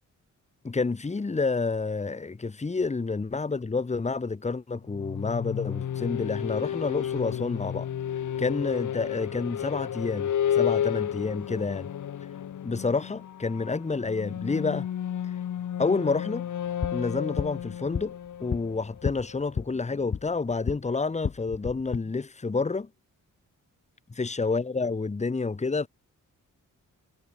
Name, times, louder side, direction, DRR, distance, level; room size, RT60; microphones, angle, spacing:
voice 1, 0.6-7.9 8.4-11.9 12.6-14.9 15.8-16.5 16.9-18.1 18.4-22.9 24.2-25.9, left 4 dB, 20° left, 1.0 m, -29 dB
sound 1, 4.8-19.5, left 10 dB, 65° left, 1.0 m, -32 dB
sound 2, 16.6-20.8 21.1-22.0, left 6 dB, 45° left, 1.2 m, -34 dB
cardioid pair, 60°, 33 cm